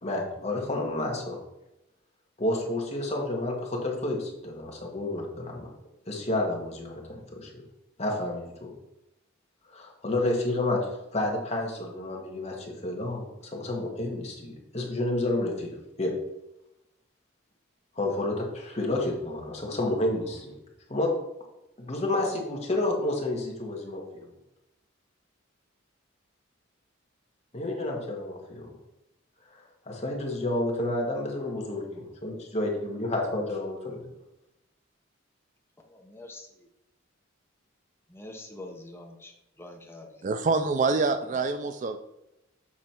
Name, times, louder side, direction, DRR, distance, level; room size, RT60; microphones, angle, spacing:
voice 1, 0.0-1.4 2.4-5.7 6.1-7.6 8.0-8.7 9.7-10.8 11.1-15.7 16.0-16.1 18.0-20.5 20.9-21.1 21.8-24.3 27.5-28.7 29.5-34.0, left 2 dB, 30° left, 0 dB, 1.4 m, -30 dB
voice 2, 35.9-36.3 38.1-39.3 39.6-40.3, left 1 dB, 10° left, 1 dB, 0.9 m, -44 dB
voice 3, 40.2-42.0, right 4 dB, 35° right, 9 dB, 0.3 m, -26 dB
7.4 x 4.0 x 4.4 m, 0.88 s
head